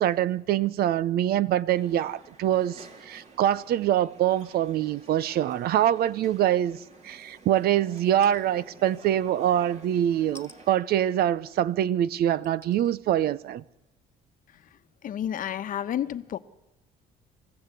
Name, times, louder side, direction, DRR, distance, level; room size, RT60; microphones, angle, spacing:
voice 1, 0.0-6.8 7.0-13.6, right 11 dB, 65° right, 0.7 m, -24 dB
sound 1, 1.7-10.8, right 3 dB, 40° right, 3.6 m, -51 dB
sound 2, 8.0-8.4 10.3-10.6 11.5-11.6 12.4-12.9 13.5-13.6, left 2 dB, 15° left, 2.1 m, -50 dB
voice 2, 15.0-16.4, left 10 dB, 55° left, 1.1 m, -30 dB
28.5 x 15.0 x 8.3 m
cardioid pair, 110°, 17 cm